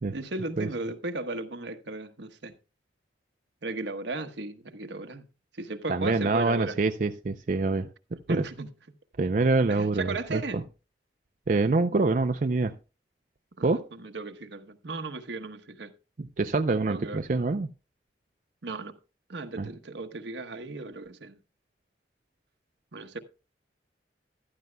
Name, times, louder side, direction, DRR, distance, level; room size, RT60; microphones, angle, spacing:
voice 1, 0.1-2.5 3.6-5.2 5.6-6.8 8.3-8.7 9.7-10.6 13.6-15.9 16.9-17.2 18.6-19.0 19.3-21.4 22.9-23.2, right 2 dB, 75° right, 1.1 m, -35 dB
voice 2, 5.9-7.9 9.2-10.6 11.5-12.7 13.6-13.9 16.4-17.7 19.6-19.7, right 3 dB, 45° right, 0.4 m, -25 dB
14.5 x 12.0 x 2.2 m
head